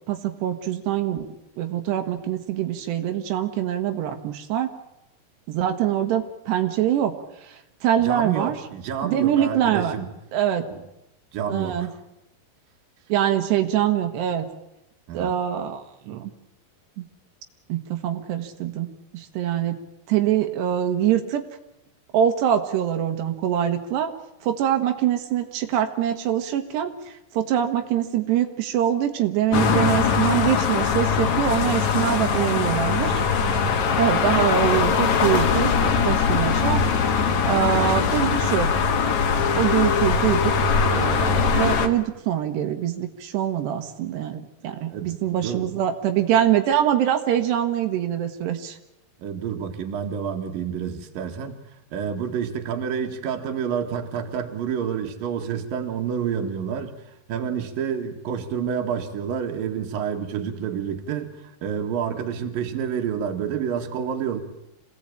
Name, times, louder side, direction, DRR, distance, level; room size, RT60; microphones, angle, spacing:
voice 1, 0.1-1.3 1.6-4.7 5.5-7.1 7.4-8.6 9.0-9.9 10.3-10.7 11.5-11.9 13.1-14.5 15.2-16.3 17.0-17.1 17.7-19.8 20.1-21.4 22.1-24.1 24.4-33.2 34.0-37.1 37.4-38.7 39.5-40.5 40.9-48.8, right 10 dB, 85° right, 5 dB, 3.5 m, -24 dB
voice 2, 8.0-10.1 11.3-11.9 15.1-15.3 44.9-45.7 49.2-51.5 51.9-56.9 57.3-64.4, right 7 dB, 60° right, 4 dB, 3.4 m, -29 dB
sound 1, 29.5-41.9, left 6 dB, 55° left, 2.5 m, -21 dB
27.0 x 18.0 x 8.8 m, 0.88 s
omnidirectional pair, 4.7 m